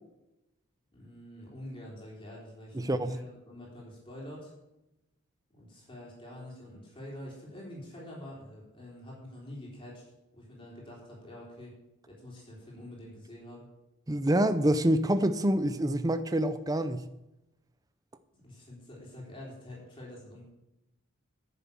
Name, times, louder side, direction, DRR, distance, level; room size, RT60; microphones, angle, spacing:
voice 1, 0.9-4.5 5.5-10.0 10.3-11.8 12.1-13.7 18.3-20.4, left 1 dB, 25° left, 3.8 m, -46 dB
voice 2, 2.8-3.1 14.1-17.1, right 1 dB, 15° right, 0.5 m, -26 dB
10.0 x 7.2 x 7.1 m
head